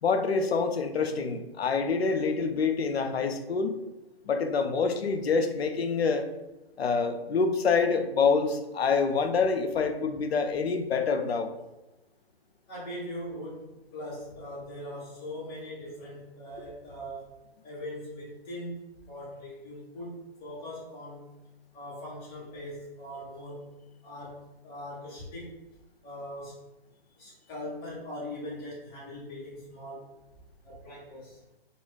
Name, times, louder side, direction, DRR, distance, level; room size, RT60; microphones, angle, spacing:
voice 1, 0.0-3.8 4.3-6.3 6.8-11.5, left 5 dB, 85° left, 7 dB, 0.5 m, -26 dB
voice 2, 12.7-17.3 17.6-21.3 21.7-23.7 24.0-25.5 26.0-26.6 27.2-30.1 30.6-31.4, equal, 15° left, -7 dB, 0.7 m, -41 dB
2.3 x 2.1 x 3.1 m, 1.0 s
hypercardioid pair, 140°, 30 cm